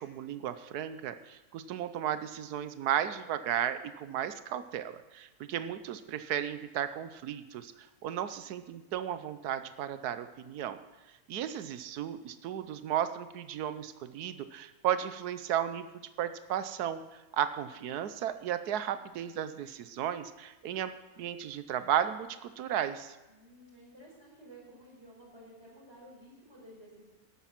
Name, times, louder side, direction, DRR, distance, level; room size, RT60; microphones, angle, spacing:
voice 1, 0.0-10.8 11.3-15.9 16.2-17.0 17.3-23.2, right 10 dB, 90° right, 11 dB, 1.3 m, -34 dB
voice 2, 23.3-27.1, right 1 dB, 45° right, -3 dB, 5.2 m, -53 dB
13.0 x 11.5 x 5.9 m, 1.1 s
omnidirectional pair, 1.6 m